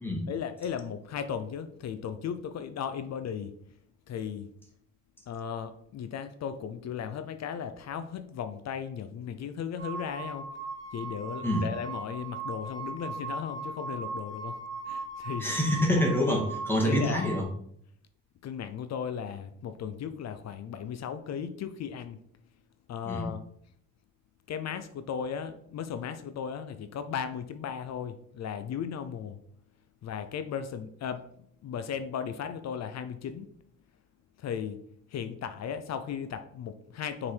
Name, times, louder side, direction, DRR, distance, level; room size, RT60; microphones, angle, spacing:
voice 1, 0.3-3.6 4.1-4.5 5.3-10.5 10.9-15.5 16.8-17.5 18.4-22.2 22.9-23.4 24.5-29.4 30.0-33.5 34.4-34.8 35.1-37.3, left 7 dB, 60° left, 9 dB, 0.6 m, -36 dB
sound 1, 9.8-17.4, right 3 dB, 35° right, 2.0 m, -38 dB
voice 2, 15.4-17.5 23.1-23.3, left 1 dB, 5° left, -2 dB, 2.1 m, -26 dB
6.2 x 4.1 x 4.5 m, 0.66 s
cardioid pair, 90°, 30 cm